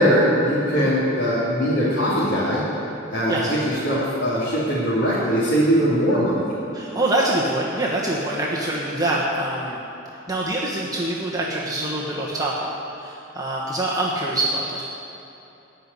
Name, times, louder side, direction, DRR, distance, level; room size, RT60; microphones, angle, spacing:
voice 1, 0.0-2.6 3.1-6.4, equal, 65° left, -11 dB, 2.8 m, -21 dB
voice 2, 6.7-9.8 10.3-12.5 13.0-14.8, right 1 dB, 20° right, -4 dB, 1.2 m, -25 dB
15.5 x 5.7 x 9.5 m, 2.9 s
head